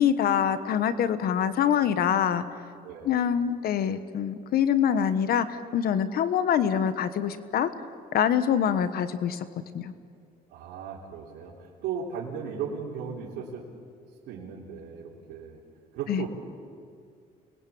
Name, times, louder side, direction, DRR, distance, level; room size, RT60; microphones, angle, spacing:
voice 1, 0.0-2.4 3.0-7.7 8.1-9.4 9.7-9.9 16.1-16.2, left 8 dB, 65° left, 12 dB, 1.4 m, -25 dB
voice 2, 2.8-3.2 10.5-13.6 14.3-15.6 15.9-16.3, right 7 dB, 85° right, -4 dB, 3.9 m, -36 dB
29.0 x 21.5 x 8.7 m, 2.2 s
cardioid pair, 110°, 17 cm